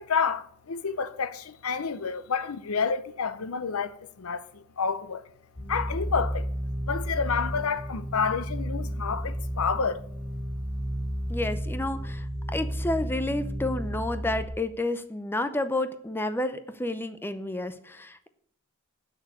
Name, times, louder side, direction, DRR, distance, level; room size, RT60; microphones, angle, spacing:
voice 1, 0.0-5.2 5.7-6.5 6.9-10.0, left 5 dB, 75° left, 0.7 m, -29 dB
sound 1, 5.6-14.5, equal, 50° left, 3.7 m, -32 dB
voice 2, 11.3-18.3, left 2 dB, 10° left, 0.6 m, -30 dB
8.3 x 6.6 x 8.1 m
head